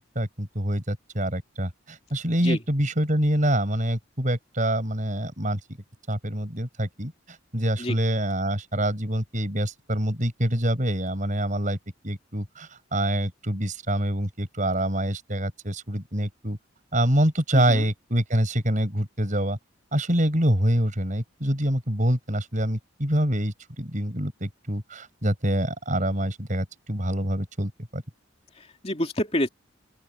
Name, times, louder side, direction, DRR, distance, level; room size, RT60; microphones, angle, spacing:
voice 1, 0.0-5.6 6.1-11.8 12.0-16.6 16.9-19.6 19.9-28.0, right 1 dB, 40° right, 5.6 m, -26 dB
voice 2, 17.5-17.9 28.5-29.5, left 1 dB, 30° left, 2.9 m, -28 dB
open air
head